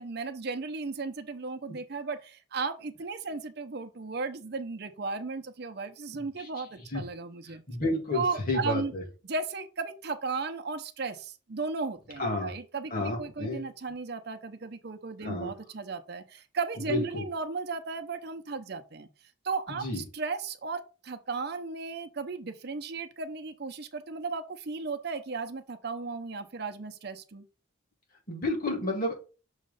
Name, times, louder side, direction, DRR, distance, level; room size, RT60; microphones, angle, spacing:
voice 1, 0.0-7.6 8.1-8.9 9.2-19.1 19.4-27.4, right 4 dB, 55° right, 0.7 m, -35 dB
voice 2, 7.7-9.0 12.2-12.5 12.9-13.7 15.2-15.5 16.9-17.2 19.7-20.0 28.3-29.1, left 2 dB, 45° left, 2.2 m, -30 dB
6.5 x 3.1 x 5.4 m
head